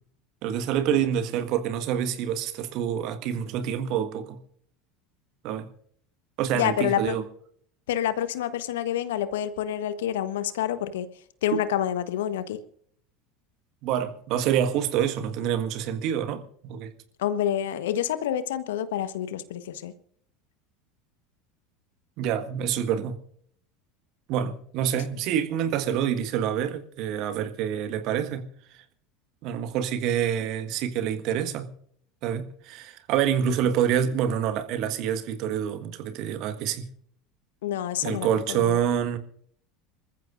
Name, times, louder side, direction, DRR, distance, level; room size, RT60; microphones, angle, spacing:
voice 1, 0.4-4.4 5.4-5.7 6.4-7.2 11.5-11.6 13.8-16.9 22.2-23.2 24.3-28.5 29.4-31.7 32.2-36.9 38.0-39.2, right 9 dB, 55° right, 1.5 m, -27 dB
voice 2, 6.5-7.2 7.9-11.1 11.4-12.6 17.2-19.9 37.6-38.8, left 10 dB, 70° left, 1.1 m, -28 dB
27.0 x 14.5 x 2.6 m
figure-of-eight pair, 75°, 0 cm